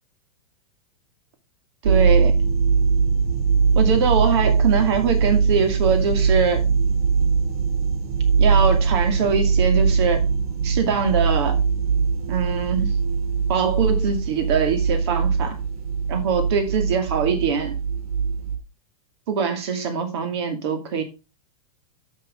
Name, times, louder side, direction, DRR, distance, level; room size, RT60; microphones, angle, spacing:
voice 1, 1.8-2.4 3.8-6.6 8.4-10.2 10.6-11.6 12.3-12.9 13.5-15.6 16.1-17.7 19.3-21.0, right 6 dB, 45° right, 2.4 m, -23 dB
sound 1, 1.8-18.6, right 5 dB, 75° right, 2.2 m, -21 dB
12.5 x 6.1 x 3.7 m
supercardioid pair, 180°, 19 cm